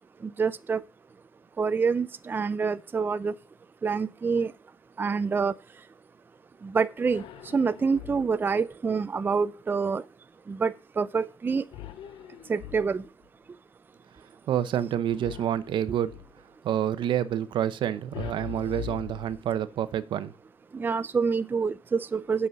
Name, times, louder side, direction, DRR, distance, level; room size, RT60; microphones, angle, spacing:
voice 1, 0.4-0.8 1.6-3.3 3.8-4.5 5.0-5.5 6.7-7.2 7.5-10.0 10.5-11.6 12.5-13.0 20.8-22.5, right 5 dB, 25° right, 0.4 m, -26 dB
sound 1, 7.0-8.5 11.7-13.3 15.2-16.4 18.1-19.8, left 12 dB, 85° left, 0.6 m, -42 dB
voice 2, 14.5-16.1 16.6-20.3, right 10 dB, 70° right, 0.7 m, -28 dB
8.1 x 5.6 x 6.3 m
cardioid pair, 120°, 8 cm